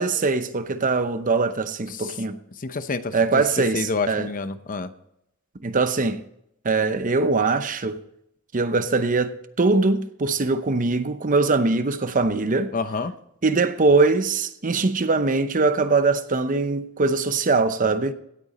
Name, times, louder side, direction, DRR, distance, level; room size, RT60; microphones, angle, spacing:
voice 1, 0.0-2.4 3.1-4.3 5.6-6.2 6.6-8.0 8.5-12.7 13.4-18.1, right 3 dB, 40° right, 0.8 m, -22 dB
voice 2, 2.6-3.1 3.7-4.9 12.7-13.1, left 4 dB, 40° left, 0.7 m, -28 dB
17.0 x 8.8 x 4.2 m
head